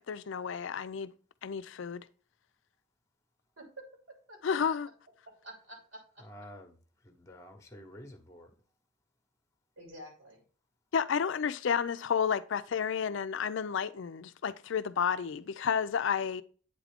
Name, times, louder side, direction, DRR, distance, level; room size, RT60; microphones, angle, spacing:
voice 1, 0.1-1.1 1.4-2.0 4.4-4.9 10.9-16.4, left 7 dB, 70° left, 0.4 m, -31 dB
voice 2, 3.6-4.6 5.4-6.2 9.8-10.4, right 1 dB, 85° right, 2.9 m, -49 dB
voice 3, 6.2-6.8 7.0-8.5, equal, 15° left, 0.8 m, -50 dB
8.2 x 3.6 x 3.4 m
head